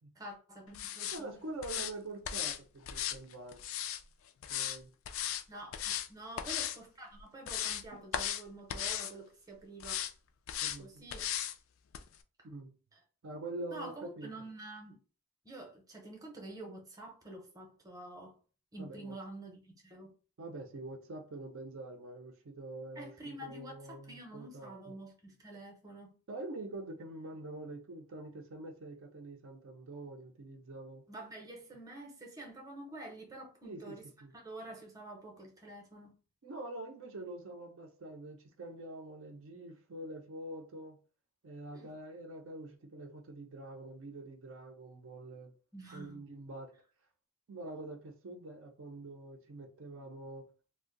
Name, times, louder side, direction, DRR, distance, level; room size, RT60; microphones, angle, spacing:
voice 1, 0.2-1.3 5.5-10.0 10.8-11.3 12.9-13.0 13.7-15.0 15.4-18.4 18.7-20.1 23.0-26.1 31.1-34.1 34.3-36.1 41.7-41.9 45.7-46.3, right 1 dB, 15° right, 0.7 m, -48 dB
sound 1, 0.7-1.2 1.6-1.9 2.2-2.6 2.9-4.0 4.4-4.8 5.0-5.4 5.7-6.1 6.4-6.8 7.2-7.8 8.1-8.4 8.7-9.1 9.8-10.1 10.5-10.8 11.1-11.5 11.9-12.0, left 10 dB, 60° left, 0.3 m, -36 dB
voice 2, 1.1-3.6 4.5-4.9 7.9-8.0 10.6-11.0 12.4-12.8 13.2-14.3 18.8-19.2 20.4-24.9 26.3-31.0 33.6-34.0 34.2-34.3 36.4-41.0 41.4-45.5 45.9-46.7 47.5-50.5, right 2 dB, 60° right, 0.5 m, -45 dB
2.5 x 2.1 x 3.7 m
head